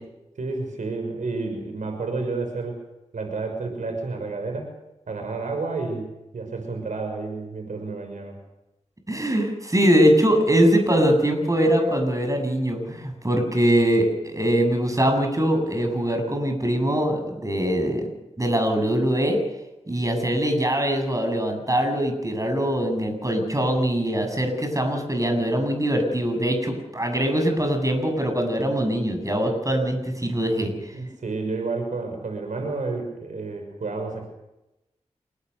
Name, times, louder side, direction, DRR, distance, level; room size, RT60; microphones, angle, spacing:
voice 1, 0.4-2.8 3.1-4.7 5.1-6.1 6.3-8.4 23.7-23.8 30.9-34.3, right 3 dB, 85° right, 4 dB, 6.0 m, -30 dB
voice 2, 9.1-18.0 18.4-19.4 19.9-30.7, equal, 25° right, 5 dB, 7.7 m, -22 dB
29.5 x 19.5 x 6.9 m, 0.93 s
wide cardioid pair, 60°, 13 cm